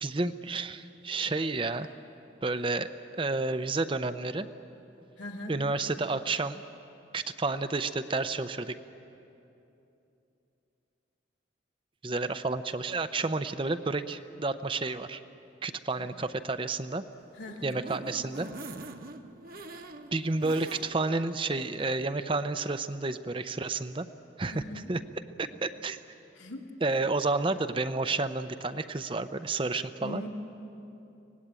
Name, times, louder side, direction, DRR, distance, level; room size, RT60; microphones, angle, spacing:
voice 1, 0.0-1.9 2.4-2.9 3.2-4.5 5.5-6.6 7.1-8.7 12.0-15.2 15.6-17.0 17.6-18.5 20.1-24.1 24.4-24.6 24.9-25.0 25.4-26.0 26.8-30.2, right 3 dB, 25° right, 11 dB, 0.6 m, -30 dB
voice 2, 5.2-5.6 16.0-16.1 17.4-17.8 24.5-25.0 26.4-26.7 30.0-30.3, left 1 dB, 85° left, 0 dB, 2.5 m, -41 dB
sound 1, 17.2-21.2 21.6-21.7 22.0-22.1, right 2 dB, 50° right, 1.1 m, -44 dB
24.5 x 18.5 x 8.9 m, 2.9 s
head